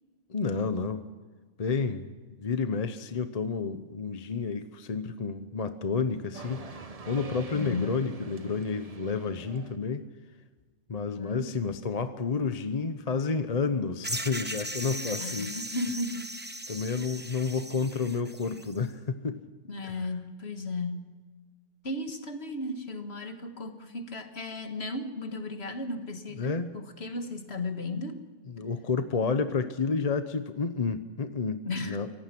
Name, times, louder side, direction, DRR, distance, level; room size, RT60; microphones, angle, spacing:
voice 1, 0.3-1.0 1.6-2.1 2.4-10.0 10.9-15.6 16.7-19.4 19.8-19.9 26.4-26.8 28.5-32.1, left 5 dB, 35° left, 10 dB, 0.9 m, -30 dB
sound 1, 6.3-9.8, right 3 dB, 30° right, 1.1 m, -44 dB
voice 2, 7.5-8.0 11.2-11.5 15.2-16.3 19.7-21.1 21.8-28.2 31.7-32.0, left 2 dB, 55° left, 7 dB, 2.0 m, -35 dB
sound 2, 14.0-18.8, right 1 dB, 10° right, 1.0 m, -38 dB
24.5 x 17.5 x 6.0 m, 1.4 s
omnidirectional pair, 1.3 m